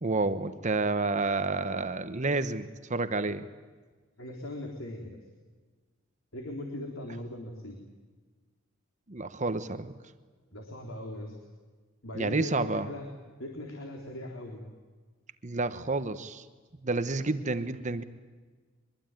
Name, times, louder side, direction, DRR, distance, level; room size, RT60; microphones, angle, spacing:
voice 1, 0.0-3.5 9.1-9.9 12.1-12.9 15.4-16.4 16.8-18.0, right 3 dB, 35° right, 11 dB, 1.1 m, -30 dB
voice 2, 4.2-5.2 6.3-7.8 10.5-11.3 12.0-13.1 13.4-14.6, left 1 dB, 85° left, 2 dB, 3.8 m, -39 dB
24.0 x 22.5 x 9.1 m, 1.4 s
head